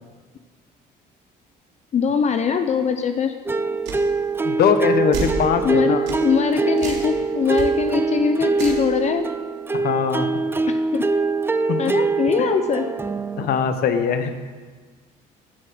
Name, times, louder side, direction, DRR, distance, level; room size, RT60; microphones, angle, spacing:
voice 1, 1.9-3.3 5.6-9.3 10.7-11.1 11.8-12.9, left 6 dB, 40° left, 7 dB, 0.8 m, -22 dB
sound 1, 3.5-13.6, right 4 dB, 15° right, 0.5 m, -23 dB
sound 2, 3.9-4.0 5.1-5.4 6.1-6.2 6.8-7.1 7.5-7.7 8.5-8.9, right 4 dB, 85° right, 3.0 m, -29 dB
voice 2, 4.4-6.1 9.7-10.3 11.7-11.8 13.4-14.3, left 7 dB, 65° left, 9 dB, 1.3 m, -21 dB
13.0 x 7.7 x 8.0 m, 1.5 s
cardioid pair, 110°, 17 cm